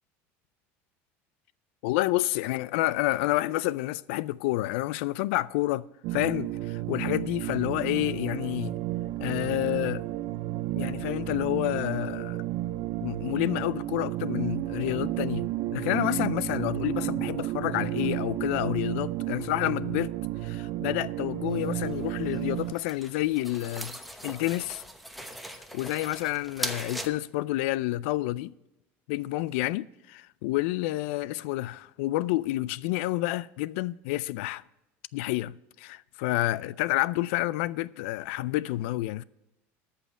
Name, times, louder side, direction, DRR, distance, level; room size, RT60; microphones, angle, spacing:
voice 1, 1.8-5.9 6.1-8.8 9.2-10.0 10.7-12.4 13.0-20.1 20.4-24.8 25.7-28.5 29.1-34.6 35.1-39.2, left 17 dB, 80° left, 0.4 m, -29 dB
sound 1, 6.0-22.7, right 15 dB, 65° right, 0.4 m, -32 dB
sound 2, 21.5-27.1, equal, ahead, 1.0 m, -40 dB
13.5 x 5.7 x 6.0 m
supercardioid pair, 105°, 7 cm